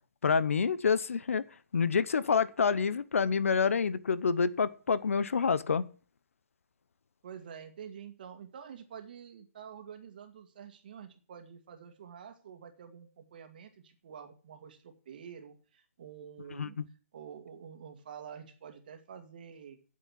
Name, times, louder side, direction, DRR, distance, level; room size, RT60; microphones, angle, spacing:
voice 1, 0.2-1.4 1.7-5.9 16.6-16.8, left 5 dB, 60° left, 18 dB, 0.8 m, -27 dB
voice 2, 7.2-16.8 17.1-19.8, right 7 dB, 35° right, 7 dB, 1.9 m, -48 dB
9.6 x 7.6 x 8.5 m, 0.39 s
hypercardioid pair, 170°, 8 cm